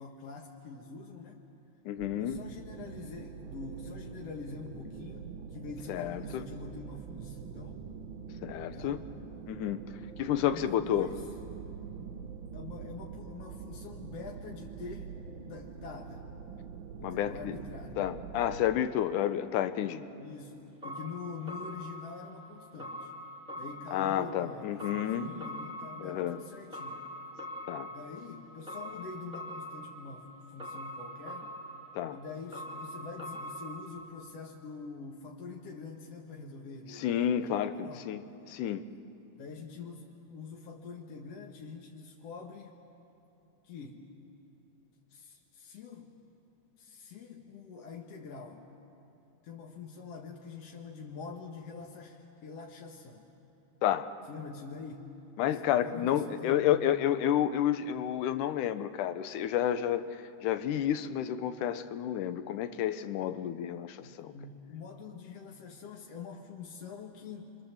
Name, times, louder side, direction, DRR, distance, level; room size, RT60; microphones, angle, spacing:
voice 1, 0.0-1.4 2.2-7.9 8.7-9.0 10.5-11.3 12.5-15.1 15.4-16.2 17.0-18.0 20.2-23.1 23.6-27.1 27.9-31.5 32.1-38.1 39.3-42.8 43.6-44.1 45.1-46.2 46.8-48.7 49.4-53.3 54.3-55.1 55.5-56.9 64.0-67.5, left 4 dB, 60° left, 0 dB, 2.1 m, -45 dB
voice 2, 1.9-2.4 5.9-6.4 8.4-9.0 9.5-9.8 10.2-11.1 17.0-17.6 18.0-20.0 23.9-25.3 26.0-26.4 27.7-27.9 31.9-32.2 37.0-38.2 38.5-38.8 53.8-54.1 55.4-60.0 60.4-64.3, left 10 dB, 90° left, 11 dB, 2.4 m, -30 dB
sound 1, 2.0-18.7, right 7 dB, 75° right, 1.1 m, -45 dB
sound 2, 20.8-34.1, equal, ahead, 2.3 m, -44 dB
29.5 x 24.5 x 7.2 m, 2.9 s
omnidirectional pair, 3.5 m